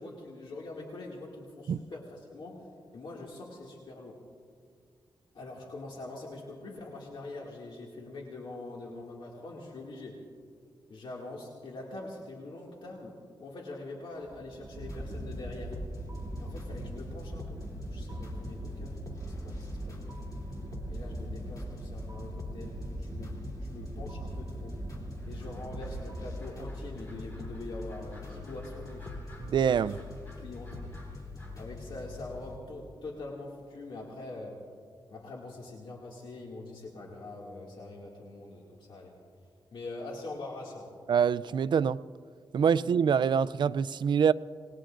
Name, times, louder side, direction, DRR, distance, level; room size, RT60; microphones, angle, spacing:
voice 1, 0.0-2.7 2.9-4.2 5.3-10.2 10.9-15.8 16.4-20.2 20.9-24.8 25.3-29.1 29.9-30.0 30.3-30.8 31.6-34.6 35.1-39.1 39.7-40.9 42.7-42.9, left 2 dB, 70° left, 2.2 m, -44 dB
sound 1, 14.2-28.4, right 2 dB, 40° right, 0.9 m, -42 dB
sound 2, 14.8-32.6, left 3 dB, 45° left, 2.8 m, -43 dB
sound 3, 25.2-31.6, equal, 20° left, 5.0 m, -57 dB
voice 2, 29.4-30.0 41.1-42.0 42.5-44.3, right 7 dB, 60° right, 0.4 m, -25 dB
27.5 x 20.0 x 2.5 m
wide cardioid pair, 130°, 9 cm